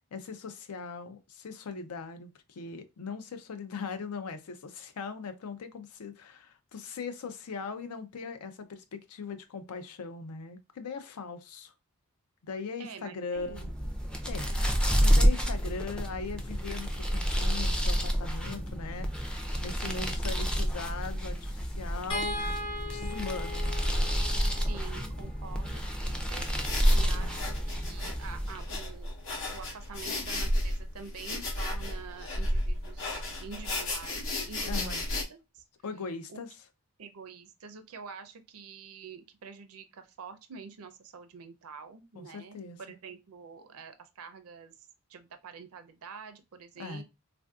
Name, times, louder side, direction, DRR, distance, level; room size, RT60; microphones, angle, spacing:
voice 1, 0.1-11.7 12.4-13.7 14.2-14.5 15.0-22.5 22.9-23.9 27.1-27.4 34.7-35.0 35.8-36.6 42.1-42.8 46.8-47.0, left 5 dB, 80° left, 0.5 m, -40 dB
voice 2, 12.8-13.7 14.4-14.7 19.8-20.2 24.6-26.5 26.9-29.1 29.4-35.6 36.3-36.4 37.0-44.7 45.1-47.0, right 5 dB, 70° right, 0.5 m, -47 dB
sound 1, 13.4-28.9, equal, 5° left, 0.4 m, -30 dB
sound 2, 22.1-28.4 29.9-30.1 30.5-30.6, left 1 dB, 20° left, 0.7 m, -41 dB
sound 3, 26.4-35.2, left 1 dB, 60° left, 0.8 m, -31 dB
3.4 x 2.5 x 2.3 m
head